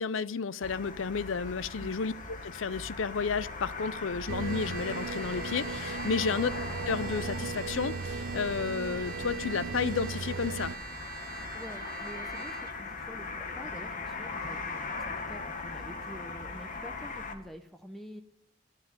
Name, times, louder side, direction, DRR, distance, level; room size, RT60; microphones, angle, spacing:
voice 1, 0.0-6.5 6.9-10.7, left 5 dB, 80° left, 0.6 m, -32 dB
sound 1, 0.6-17.3, left 3 dB, 45° left, 1.6 m, -40 dB
Trumpet, 4.2-12.8, right 8 dB, 50° right, 1.3 m, -44 dB
sound 2, 4.3-10.8, right 4 dB, 80° right, 0.7 m, -37 dB
voice 2, 11.3-18.2, equal, ahead, 0.8 m, -47 dB
12.5 x 10.5 x 9.4 m
head